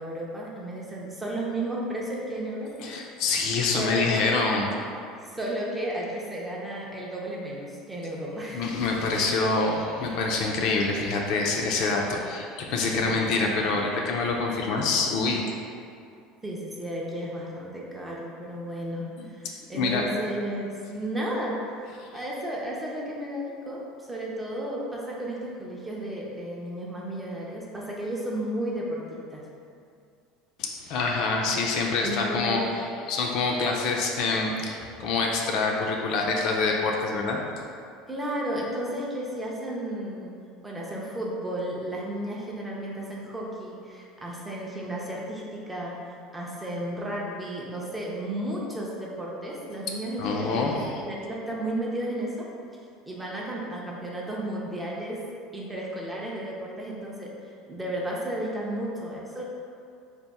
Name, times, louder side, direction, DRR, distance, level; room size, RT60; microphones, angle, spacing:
voice 1, 0.0-2.9 3.7-4.1 4.3-4.4 5.2-8.7 13.0-13.2 16.4-21.6 22.1-29.5 32.0-32.6 38.1-40.3 40.6-45.9 46.3-52.5 53.0-55.2 55.5-59.5, right 1 dB, 10° right, -4 dB, 0.5 m, -33 dB
voice 2, 2.8-4.7 8.5-15.5 19.2-19.3 19.7-20.1 30.6-32.7 33.1-37.4 50.2-51.0, left 3 dB, 50° left, 0 dB, 0.4 m, -26 dB
3.4 x 2.5 x 4.1 m, 2.4 s
cardioid pair, 160°, 0 cm